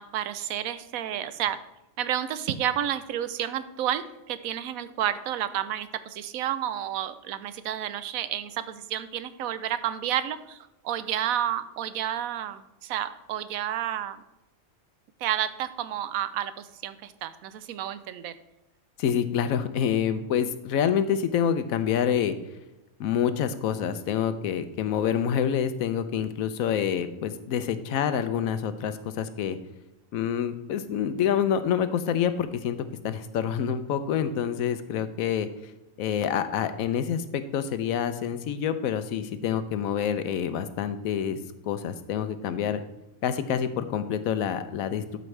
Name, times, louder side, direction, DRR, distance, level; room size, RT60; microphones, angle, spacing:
voice 1, 0.0-1.6 2.0-14.2 15.2-18.3, right 11 dB, 85° right, 13 dB, 1.0 m, -30 dB
voice 2, 19.0-22.4 23.0-29.6 30.1-32.8 33.0-35.5 36.0-41.4 41.7-42.8 43.2-45.2, left 8 dB, 85° left, 11 dB, 1.1 m, -27 dB
12.5 x 5.3 x 3.3 m, 0.95 s
omnidirectional pair, 1.4 m